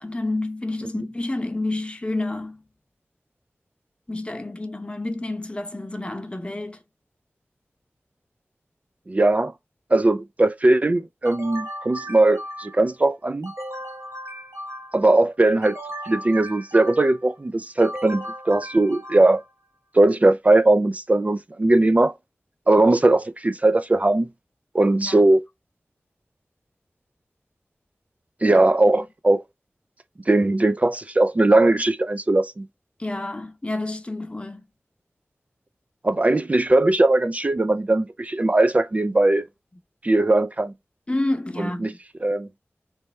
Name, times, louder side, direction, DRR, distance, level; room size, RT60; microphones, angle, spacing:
voice 1, 0.0-2.6 4.1-6.8 25.0-25.2 28.5-28.6 28.9-29.0 33.0-34.6 41.1-41.9, left 2 dB, 25° left, 0.7 m, -29 dB
voice 2, 9.1-9.5 9.9-13.5 14.9-15.8 16.0-19.4 19.9-22.1 22.7-24.3 24.7-25.4 28.4-29.4 30.3-32.7 36.0-39.4 40.0-40.7 41.6-41.9 42.2-42.5, right 2 dB, 35° right, 0.4 m, -19 dB
sound 1, 11.2-12.9 13.4-15.1 15.6-17.3 17.8-19.5, equal, 70° right, 1.3 m, -36 dB
3.3 x 3.1 x 4.2 m
wide cardioid pair, 80°, 4 cm